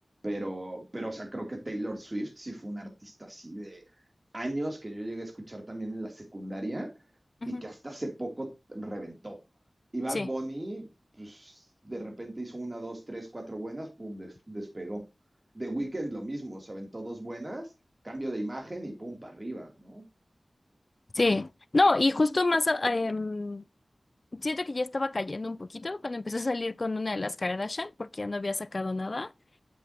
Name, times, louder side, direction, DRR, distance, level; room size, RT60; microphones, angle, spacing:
voice 1, 0.2-3.8 4.3-6.9 7.5-9.4 9.9-10.9 11.1-15.1 15.5-17.7 18.0-20.0, right 1 dB, 30° right, 2.8 m, -37 dB
voice 2, 21.1-23.6 24.3-29.3, left 2 dB, 45° left, 0.4 m, -28 dB
8.5 x 7.9 x 2.8 m
wide cardioid pair, 60°, 0 cm